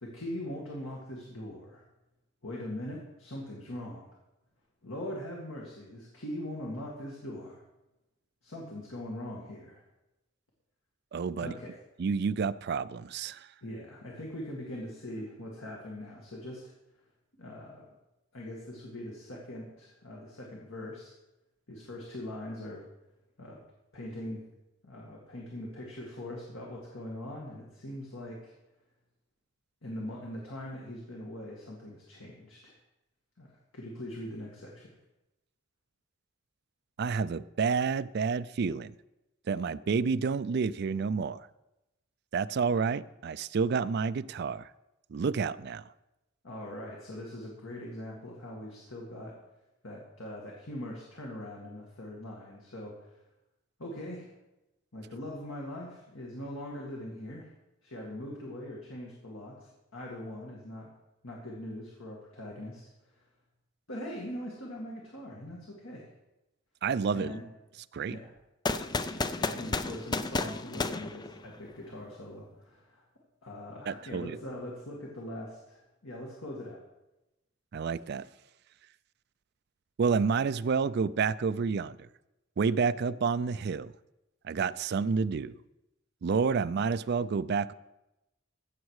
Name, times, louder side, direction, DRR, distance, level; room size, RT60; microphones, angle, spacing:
voice 1, 0.0-1.8 2.4-4.1 4.8-7.6 8.4-9.8 11.4-11.8 13.6-16.7 17.4-17.9 18.3-21.1 21.7-22.9 23.4-23.6 23.9-24.4 24.8-28.5 29.8-32.8 33.4-34.9 46.4-49.4 49.8-53.2 53.8-54.3 54.9-57.5 57.8-60.9 61.2-63.2 63.9-66.1 67.1-67.4 68.1-68.3 69.1-73.1 73.4-76.8, left 1 dB, 80° left, -2 dB, 2.1 m, -41 dB
voice 2, 11.1-11.5 12.0-13.5 37.0-38.9 39.5-41.5 42.3-44.7 45.1-45.8 66.8-67.4 67.9-68.2 73.9-74.4 77.7-78.3 80.0-82.1 82.6-83.9 84.4-85.6 86.2-87.7, right 5 dB, 50° right, 15 dB, 0.4 m, -29 dB
sound 1, 68.6-71.8, left 3 dB, 20° left, 0.4 m, -32 dB
15.5 x 7.3 x 4.8 m, 0.96 s
head